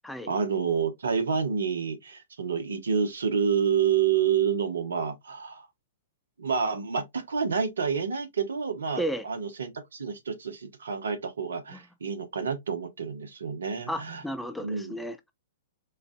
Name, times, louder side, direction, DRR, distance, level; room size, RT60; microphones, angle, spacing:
voice 1, 0.3-5.7 6.4-14.2 14.6-14.9, right 6 dB, 75° right, 1.0 m, -28 dB
voice 2, 13.9-15.3, equal, 5° left, 0.5 m, -33 dB
4.4 x 2.4 x 2.6 m
figure-of-eight pair, 110°, 0 cm